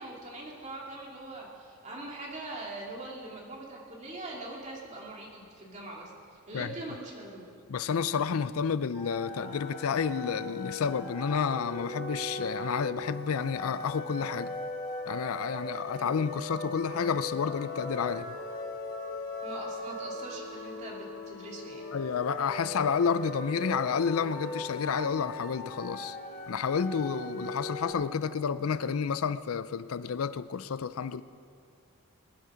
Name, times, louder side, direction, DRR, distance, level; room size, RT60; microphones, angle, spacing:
voice 1, 0.0-7.5 19.4-22.0, right 2 dB, 35° right, -3 dB, 2.7 m, -42 dB
voice 2, 7.7-14.5 15.1-18.4 21.9-26.2 26.5-31.2, left 6 dB, 80° left, 15 dB, 0.5 m, -30 dB
sound 1, 8.9-27.9, left 2 dB, 45° left, 4.1 m, -39 dB
20.5 x 11.0 x 5.1 m, 2.6 s
head